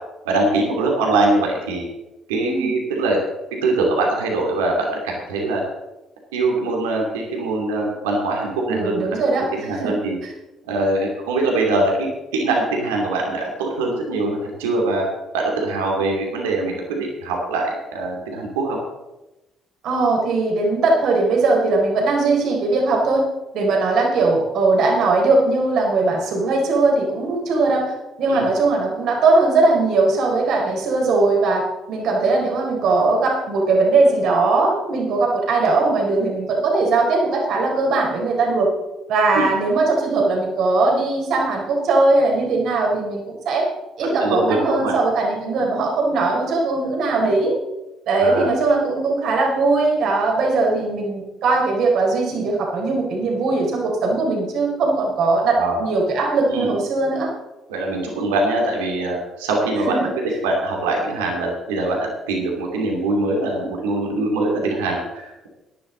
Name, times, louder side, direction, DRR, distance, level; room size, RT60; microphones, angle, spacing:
voice 1, 0.2-1.9 2.3-3.2 3.6-5.6 6.3-9.1 9.5-10.2 10.7-12.1 12.3-15.0 15.3-18.8 28.3-28.4 39.3-39.4 44.0-44.9 48.2-48.5 55.6-55.8 56.5-56.7 57.7-60.0 60.4-65.5, right 2 dB, 85° right, 0 dB, 2.8 m, -22 dB
voice 2, 8.7-10.0 10.2-10.3 19.8-23.3 23.5-31.6 31.9-38.7 39.1-43.7 44.0-47.5 48.1-57.3 59.8-60.1, right 3 dB, 65° right, 0 dB, 4.1 m, -19 dB
17.0 x 11.0 x 4.0 m, 1.0 s
hypercardioid pair, 55°, 0 cm